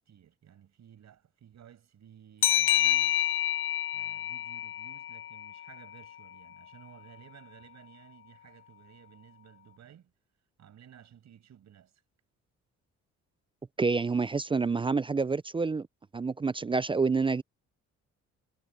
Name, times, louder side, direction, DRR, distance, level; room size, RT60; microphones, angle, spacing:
voice 1, 0.0-3.2 3.9-10.1 10.6-11.9, right 9 dB, 65° right, 6.5 m, -55 dB
sound 1, 2.4-5.7, left 12 dB, 45° left, 0.5 m, -28 dB
voice 2, 13.8-15.9 16.1-17.4, right 4 dB, 20° right, 0.3 m, -28 dB
cardioid pair, 90°, 30 cm